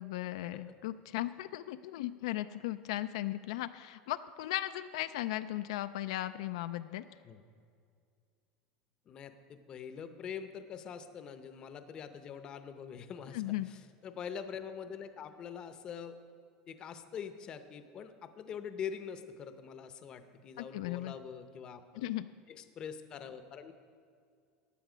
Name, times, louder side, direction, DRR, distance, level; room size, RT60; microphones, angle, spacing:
voice 1, 0.0-7.0 13.3-13.7 20.6-21.2 22.0-22.3, left 15 dB, 80° left, 11 dB, 0.4 m, -37 dB
voice 2, 9.1-16.2 16.7-22.1 22.5-23.7, left 7 dB, 25° left, 10 dB, 0.7 m, -44 dB
15.5 x 9.9 x 5.0 m, 2.3 s
supercardioid pair, 165°, 3 cm